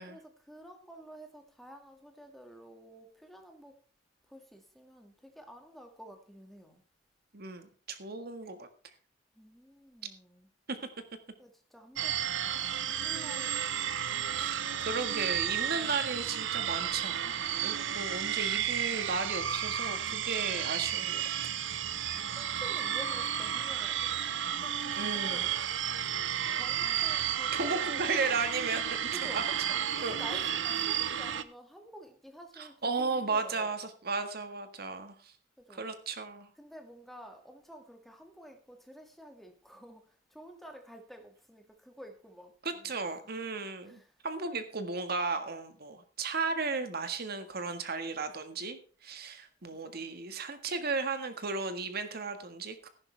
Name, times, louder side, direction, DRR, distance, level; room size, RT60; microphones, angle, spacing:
voice 1, 0.1-3.8 4.3-6.8 9.3-10.5 11.4-12.2 12.9-13.6 14.1-14.2 14.4-15.0 21.8-25.5 26.5-28.5 29.1-29.4 29.9-33.7 35.6-35.9 36.6-43.1 43.8-44.2 49.6-50.1, equal, ahead, 2.1 m, -51 dB
voice 2, 7.3-8.7 10.7-10.8 14.4-21.6 25.0-25.5 27.5-29.0 29.3-29.4 30.0-30.4 32.6-35.3 35.7-36.5 42.6-52.9, right 4 dB, 55° right, 1.7 m, -35 dB
sound 1, 12.0-31.4, right 9 dB, 90° right, 0.9 m, -32 dB
15.0 x 11.5 x 3.4 m
head